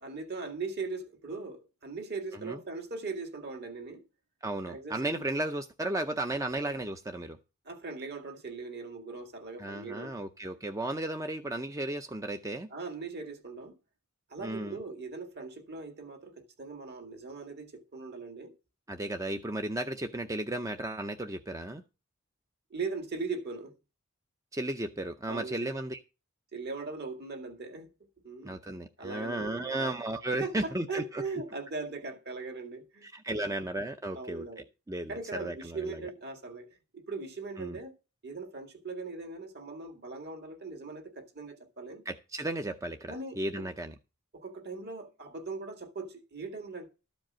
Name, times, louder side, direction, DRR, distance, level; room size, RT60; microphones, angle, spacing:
voice 1, 0.0-4.0 4.7-5.2 7.7-10.3 12.7-13.8 14.3-18.5 22.7-23.8 25.3-25.8 26.5-27.9 28.2-28.6 29.0-30.0 30.4-33.6 34.1-34.7 35.1-37.9 38.2-42.0 43.1-43.6 44.3-46.9, right 3 dB, 50° right, 2.0 m, -40 dB
voice 2, 4.4-7.4 9.6-12.7 14.4-14.8 18.9-21.8 24.5-26.0 28.4-31.2 33.0-34.4 34.9-36.0 37.6-37.8 42.1-43.9, right 1 dB, 15° right, 0.5 m, -34 dB
13.0 x 5.2 x 7.3 m
head